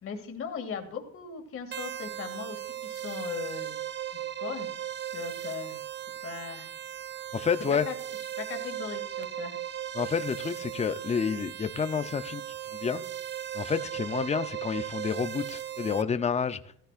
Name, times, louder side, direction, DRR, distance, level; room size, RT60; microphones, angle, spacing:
voice 1, 0.0-3.7 4.4-4.7 5.1-5.8 6.2-6.7 7.7-7.9 8.4-9.6, left 6 dB, 45° left, 2.4 m, -38 dB
sound 1, 1.7-16.0, right 11 dB, 35° right, 0.6 m, -37 dB
voice 2, 7.3-7.9 9.9-12.4 12.7-13.0 13.5-16.6, left 6 dB, 20° left, 0.6 m, -29 dB
16.0 x 15.0 x 2.5 m
cardioid pair, 115°, 31 cm